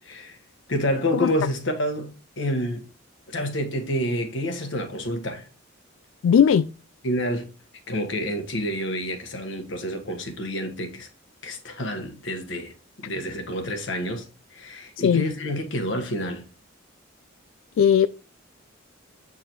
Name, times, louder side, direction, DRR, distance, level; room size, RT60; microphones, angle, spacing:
voice 1, 0.0-0.4 0.7-2.8 3.3-5.5 7.0-7.4 7.9-11.1 11.4-16.5, equal, 65° left, 1.4 m, -28 dB
voice 2, 6.2-6.7 15.0-15.2 17.8-18.1, left 8 dB, 80° left, 0.3 m, -17 dB
8.4 x 5.0 x 3.0 m
head